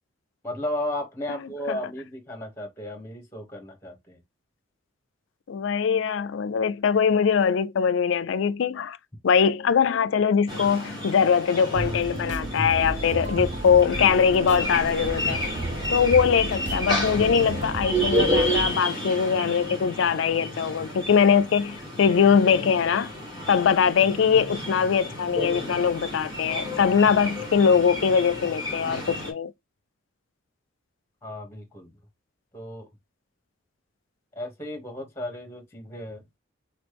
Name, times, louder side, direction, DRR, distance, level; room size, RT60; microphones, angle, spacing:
voice 1, 0.4-4.2 31.2-31.9 32.5-32.9 34.3-36.2, left 1 dB, 10° left, 1.1 m, -34 dB
voice 2, 5.5-9.0 9.2-15.4 15.9-23.1 23.5-29.5, left 6 dB, 70° left, 0.4 m, -22 dB
sound 1, 10.5-29.3, equal, 20° right, 1.6 m, -31 dB
sound 2, 11.7-18.7, right 2 dB, 35° right, 0.5 m, -33 dB
4.2 x 3.1 x 3.4 m
head